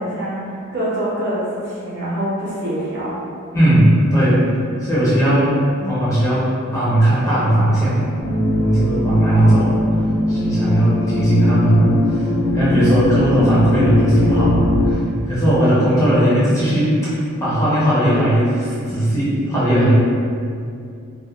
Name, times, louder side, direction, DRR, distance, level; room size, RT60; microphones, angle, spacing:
voice 1, 0.0-3.2 9.3-10.2, right 1 dB, 50° right, -8 dB, 0.7 m, -26 dB
voice 2, 3.5-4.4 4.8-6.5 6.7-8.0 8.5-9.7 10.3-12.2 12.5-15.0 15.3-19.9, right 1 dB, 15° left, -10 dB, 0.5 m, -17 dB
sound 1, 8.2-14.9, left 1 dB, 55° left, 0.6 m, -19 dB
2.8 x 2.1 x 2.3 m, 2.4 s
head